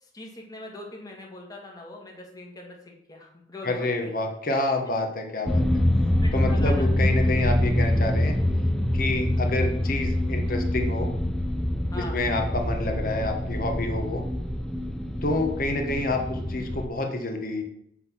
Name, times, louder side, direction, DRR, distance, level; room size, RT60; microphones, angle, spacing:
voice 1, 0.0-4.1 6.2-6.8 11.9-12.3 15.9-16.1, left 2 dB, 20° left, 0 dB, 1.7 m, -41 dB
voice 2, 3.6-5.6 6.3-8.3 8.9-11.1 12.0-14.2 15.2-17.6, left 2 dB, 50° left, 4 dB, 1.2 m, -28 dB
sound 1, 5.5-16.9, left 1 dB, 5° left, 0.6 m, -25 dB
7.6 x 4.0 x 6.1 m, 0.72 s
head